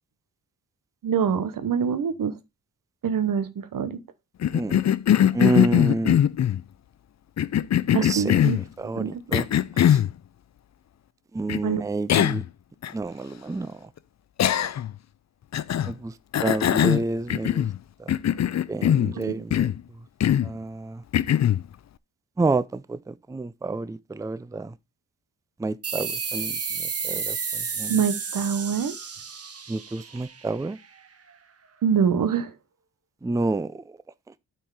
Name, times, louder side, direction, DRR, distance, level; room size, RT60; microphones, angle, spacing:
voice 1, 1.0-2.3 3.0-4.0 7.9-9.4 11.6-11.8 19.1-19.5 27.9-29.0 31.8-32.5, right 7 dB, 75° right, 1.1 m, -25 dB
Cough, 4.4-6.6 7.4-8.6 9.3-10.1 11.5-11.6 12.1-12.5 12.8-12.9 14.4-14.9 15.5-15.9 16.3-17.8 18.1-19.1 19.5-19.8 20.2-20.5 21.1-21.6, left 10 dB, 55° left, 0.5 m, -21 dB
voice 2, 5.3-6.2 8.0-8.4 8.8-9.5 9.9-10.0 11.3-12.4 12.9-13.8 15.9-16.1 16.4-17.7 18.7-19.7 20.4-21.0 22.4-24.7 25.6-26.5 27.0-27.4 27.8-27.9 29.7-30.8 33.2-33.7, right 2 dB, 10° right, 0.5 m, -28 dB
sound 1, 25.8-31.0, right 5 dB, 45° right, 1.2 m, -32 dB
8.9 x 4.5 x 4.8 m
cardioid pair, 65°, 33 cm